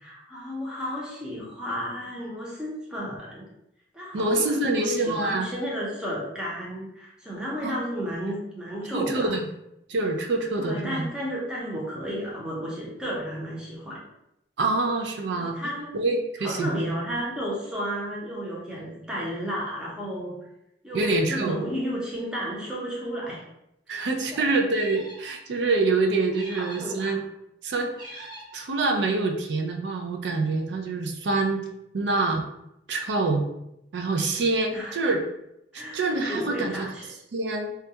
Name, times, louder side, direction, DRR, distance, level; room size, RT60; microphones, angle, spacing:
voice 1, 0.0-3.4 3.9-9.3 10.6-14.0 15.3-16.0 16.4-20.4 20.8-23.4 23.9-24.5 26.5-27.2 34.7-34.9 35.7-36.0 36.3-37.1, equal, 5° right, -6 dB, 0.6 m, -33 dB
voice 2, 4.1-5.5 7.6-7.7 8.9-9.5 9.9-11.1 14.6-17.0 20.9-21.6 23.9-27.2 27.6-31.7 31.9-32.4 32.9-33.4 33.9-35.2 35.9-36.9 37.3-37.7, right 3 dB, 75° right, 3 dB, 0.4 m, -26 dB
sound 1, 24.7-25.4 26.3-27.0 27.9-28.6, right 1 dB, 25° right, 1.0 m, -44 dB
2.3 x 2.2 x 2.7 m, 0.82 s
head